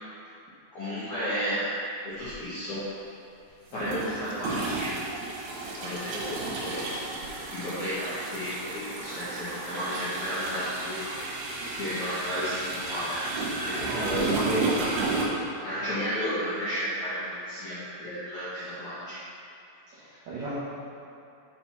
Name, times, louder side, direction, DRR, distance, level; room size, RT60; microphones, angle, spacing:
voice 1, 0.7-1.7 2.0-2.8 3.7-5.2 5.8-6.8 7.5-11.1 11.7-13.2 13.6-14.3 15.6-19.2, equal, 75° left, -12 dB, 1.7 m, -33 dB
sound 1, 2.2-2.3 3.7-15.2, right 3 dB, 70° right, 3.6 m, -33 dB
voice 2, 13.8-15.3 19.9-20.6, right 2 dB, 85° right, -9 dB, 1.9 m, -32 dB
7.9 x 4.4 x 5.8 m, 2.7 s
omnidirectional pair, 5.8 m